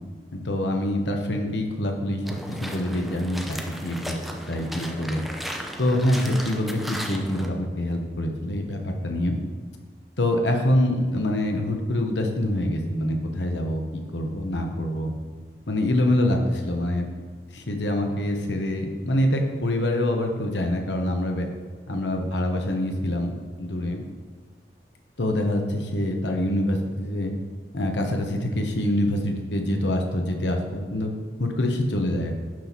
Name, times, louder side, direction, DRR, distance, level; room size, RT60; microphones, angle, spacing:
voice 1, 0.3-2.2 2.5-4.1 4.5-5.2 5.8-9.4 10.2-15.1 15.7-17.1 17.5-21.5 21.9-23.3 23.6-24.0 25.2-27.3 27.7-31.1 31.4-32.4, left 1 dB, 85° left, 3 dB, 1.1 m, -25 dB
sound 1, 2.2-7.5, equal, ahead, 0.5 m, -36 dB
11.0 x 4.2 x 4.6 m, 1.5 s
head